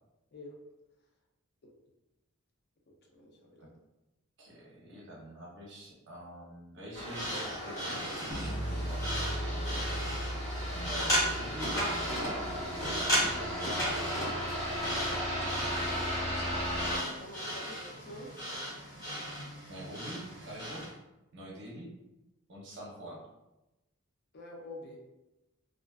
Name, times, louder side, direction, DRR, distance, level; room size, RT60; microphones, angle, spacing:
voice 1, 3.1-3.7 16.9-18.3 24.3-25.0, left 1 dB, 50° left, 1 dB, 0.5 m, -47 dB
voice 2, 4.4-9.9 10.6-14.3 19.7-20.9 21.3-21.9 22.5-23.3, right 1 dB, 55° right, -3 dB, 0.6 m, -46 dB
sound 1, 6.9-17.0, equal, 80° left, 1.1 m, -36 dB
sound 2, 7.0-20.9, equal, 15° left, 1.0 m, -36 dB
sound 3, 8.3-14.3, equal, 10° right, 0.4 m, -39 dB
2.4 x 2.2 x 2.3 m, 0.97 s
head